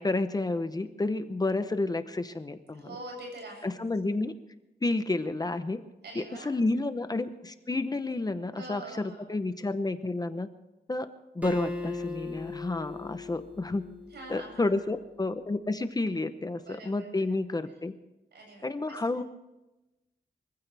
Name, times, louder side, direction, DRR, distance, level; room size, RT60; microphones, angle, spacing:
voice 1, 0.0-2.9 3.6-4.3 4.8-5.8 6.1-10.5 10.9-11.1 11.3-13.8 14.3-17.9 18.6-19.2, left 2 dB, 20° left, 10 dB, 0.8 m, -30 dB
voice 2, 2.7-3.7 6.0-6.5 8.5-9.3 14.1-14.7 16.5-17.2 18.3-19.0, right 2 dB, 80° right, 0 dB, 7.7 m, -44 dB
Acoustic guitar, 11.4-14.8, left 2 dB, 10° right, 2.2 m, -39 dB
24.5 x 15.0 x 3.4 m, 0.99 s
wide cardioid pair, 150°, 17 cm